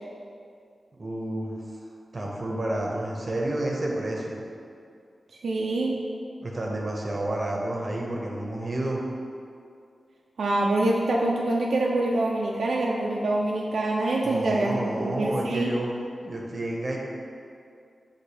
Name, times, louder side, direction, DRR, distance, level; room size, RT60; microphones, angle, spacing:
voice 1, 1.0-1.5 2.1-4.4 6.4-9.0 14.2-15.9 16.2-17.0, right 1 dB, 55° right, -2 dB, 0.6 m, -30 dB
voice 2, 5.4-6.0 10.4-15.7, right 2 dB, 85° right, -2 dB, 0.3 m, -25 dB
4.8 x 2.5 x 4.0 m, 2.3 s
cardioid pair, 45°, 0 cm